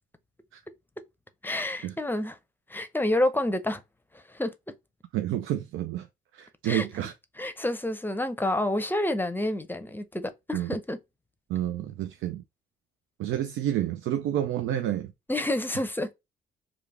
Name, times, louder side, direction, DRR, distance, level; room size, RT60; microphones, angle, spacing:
voice 1, 1.4-2.4 2.7-3.8 4.1-4.5 6.6-6.9 7.4-11.0 15.3-16.1, left 1 dB, 10° left, 0.6 m, -28 dB
voice 2, 5.1-6.1 6.3-7.1 10.5-10.7 11.5-12.4 13.2-15.1, right 12 dB, 85° right, 0.5 m, -29 dB
3.4 x 2.4 x 3.4 m
cardioid pair, 90°, 20 cm